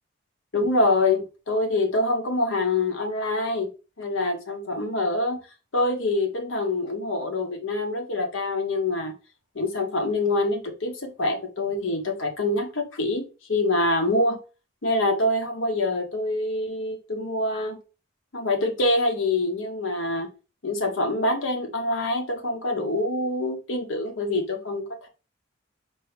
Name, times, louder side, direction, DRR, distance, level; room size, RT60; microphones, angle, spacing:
voice 1, 0.5-3.7 4.0-5.4 5.7-9.1 9.5-14.4 14.8-17.8 18.3-20.3 20.6-25.1, left 2 dB, 85° left, 1.0 m, -25 dB
4.5 x 2.7 x 3.2 m
head